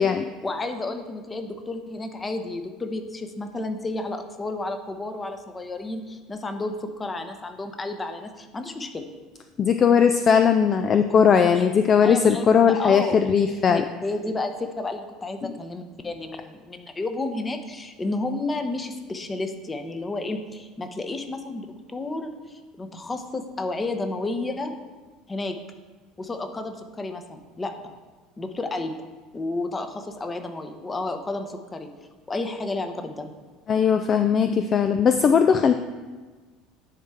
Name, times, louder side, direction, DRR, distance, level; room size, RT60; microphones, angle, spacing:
voice 1, 0.4-9.1 12.0-12.5 12.8-24.7 25.3-25.6 26.2-27.7 28.4-28.9 29.3-31.9 32.3-33.3, left 2 dB, 20° left, 7 dB, 0.9 m, -31 dB
voice 2, 9.6-13.8 15.4-15.5 33.7-35.7, left 7 dB, 35° left, 8 dB, 0.4 m, -19 dB
10.0 x 4.3 x 4.8 m, 1.4 s
figure-of-eight pair, 65°, 0 cm